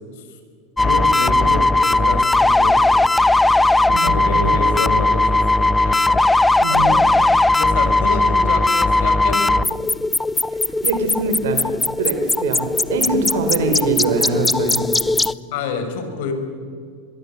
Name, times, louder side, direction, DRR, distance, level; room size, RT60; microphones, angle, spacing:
voice 1, 0.8-2.7 4.0-6.2 6.7-7.0 7.5-9.7 15.5-16.3, left 4 dB, 70° left, 6 dB, 5.7 m, -27 dB
sound 1, 0.8-15.3, left 2 dB, 10° left, 0.6 m, -17 dB
voice 2, 3.9-4.6 6.6-7.0 10.8-11.7 12.0-14.8, right 4 dB, 85° right, 7 dB, 3.7 m, -23 dB
24.5 x 22.5 x 8.1 m, 2.1 s
supercardioid pair, 120°, 0 cm